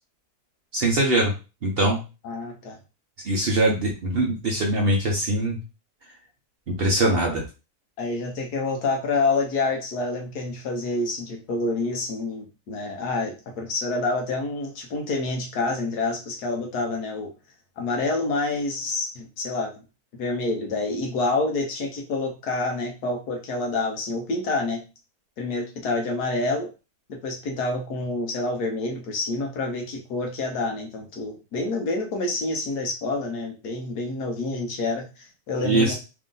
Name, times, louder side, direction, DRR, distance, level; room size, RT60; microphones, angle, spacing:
voice 1, 0.7-1.3 1.6-2.0 3.2-5.6 6.7-7.4 35.6-35.9, right 1 dB, 50° right, 0 dB, 0.8 m, -22 dB
voice 2, 2.2-2.8 7.0-7.2 8.0-17.3 17.8-19.8 20.2-24.8 25.4-26.7 27.1-35.9, left 3 dB, 75° left, 2 dB, 1.4 m, -28 dB
3.6 x 2.6 x 3.8 m, 0.30 s
omnidirectional pair, 1.7 m